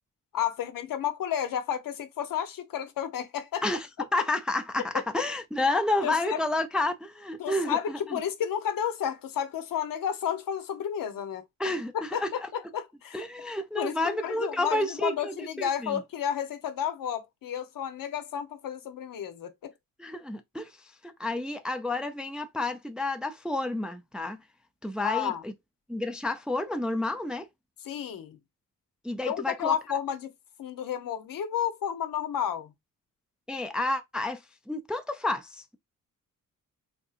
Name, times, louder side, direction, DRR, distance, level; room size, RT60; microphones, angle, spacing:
voice 1, 0.3-3.6 5.2-5.3 6.0-6.4 7.4-11.4 12.1-12.2 12.5-13.2 13.8-19.7 25.0-25.4 27.8-28.4 29.2-30.3 30.6-32.7, left 9 dB, 80° left, 0.8 m, -31 dB
voice 2, 4.1-8.2 11.6-12.5 13.1-16.0 20.0-24.4 24.8-25.5 25.9-27.5 29.0-29.8 33.5-35.8, left 2 dB, 5° right, 0.3 m, -30 dB
3.7 x 2.7 x 2.3 m
wide cardioid pair, 175°, 33 cm